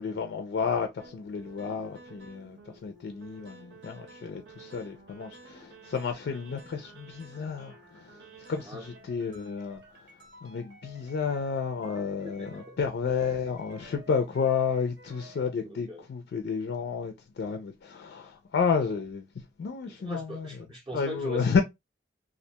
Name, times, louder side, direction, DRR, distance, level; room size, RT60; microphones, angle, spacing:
voice 1, 0.0-8.1 8.5-9.8 10.4-19.2 19.6-20.5 20.9-21.6, left 5 dB, 65° left, 0.3 m, -31 dB
sound 1, 1.0-12.9 13.2-15.4, right 3 dB, 65° right, 0.8 m, -52 dB
voice 2, 12.2-12.8 15.6-16.1 19.9-21.6, equal, 25° right, 0.5 m, -41 dB
2.4 x 2.1 x 2.7 m
head